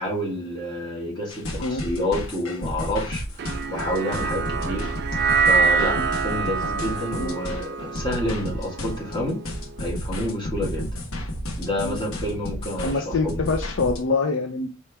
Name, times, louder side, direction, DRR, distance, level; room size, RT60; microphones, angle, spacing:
voice 1, 0.0-4.9 5.1-6.0 6.2-9.4 9.8-11.0 11.6-13.4, left 1 dB, 20° left, 1.6 m, -29 dB
sound 1, 1.3-14.0, equal, 85° left, 1.1 m, -32 dB
sound 2, 3.4-9.8, right 5 dB, 50° right, 0.4 m, -25 dB
voice 2, 12.8-14.7, left 4 dB, 65° left, 0.5 m, -25 dB
4.4 x 3.0 x 3.4 m
head